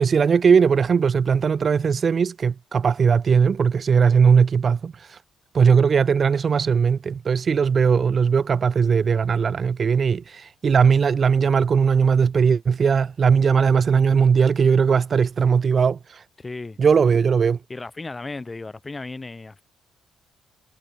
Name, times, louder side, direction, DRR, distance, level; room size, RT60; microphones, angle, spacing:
voice 1, 0.0-5.2 5.5-16.2 16.8-17.6, right 6 dB, 45° right, 0.6 m, -19 dB
voice 2, 16.4-16.8 17.7-19.6, left 3 dB, 20° left, 2.6 m, -35 dB
cardioid pair, 90°, 0 cm